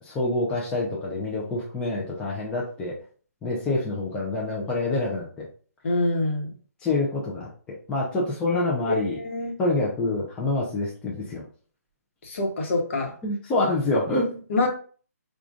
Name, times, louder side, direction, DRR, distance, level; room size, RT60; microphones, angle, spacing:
voice 1, 0.0-2.9 3.4-5.5 6.8-7.5 7.9-9.2 9.6-11.4 13.2-14.4, left 2 dB, 10° left, -4 dB, 0.5 m, -26 dB
voice 2, 5.8-6.5 8.5-8.6 8.9-9.6 12.2-13.1 14.5-14.7, left 2 dB, 45° left, 2 dB, 1.1 m, -25 dB
4.8 x 2.4 x 2.4 m, 0.41 s
hypercardioid pair, 150°, 9 cm